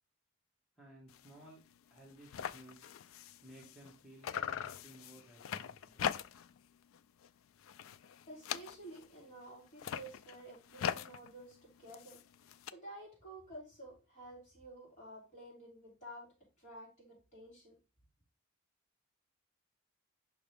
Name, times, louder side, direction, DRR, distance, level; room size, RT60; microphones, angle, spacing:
voice 1, 0.8-1.6 1.9-2.9 3.4-6.1, right 1 dB, ahead, 1.6 m, -57 dB
sound 1, 1.1-1.3 1.7-1.8 2.0-4.0 4.2-6.6 6.9-7.3 7.6-9.1 9.7-12.7, left 8 dB, 80° left, 0.3 m, -41 dB
voice 2, 8.3-12.2 12.7-16.3 16.6-17.7, right 1 dB, 35° left, 3.1 m, -51 dB
6.0 x 5.0 x 3.4 m
head